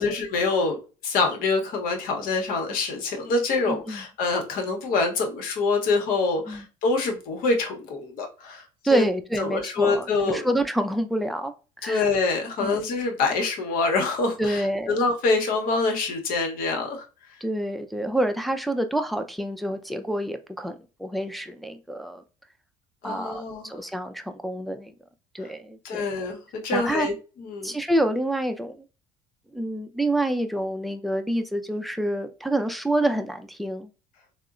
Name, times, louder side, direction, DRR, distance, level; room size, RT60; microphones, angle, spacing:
voice 1, 0.0-8.6 8.9-9.0 9.4-10.5 11.8-17.0 23.0-23.7 25.8-27.1 27.4-27.7, left 3 dB, 65° left, 0.9 m, -25 dB
voice 2, 3.7-4.0 6.4-6.7 8.8-12.1 12.6-12.8 14.4-15.0 17.4-22.2 23.0-24.9 25.3-26.1 26.7-27.1 27.6-28.8 29.5-33.9, right 1 dB, ahead, 0.4 m, -27 dB
3.5 x 2.1 x 2.4 m
hypercardioid pair, 70°, 16 cm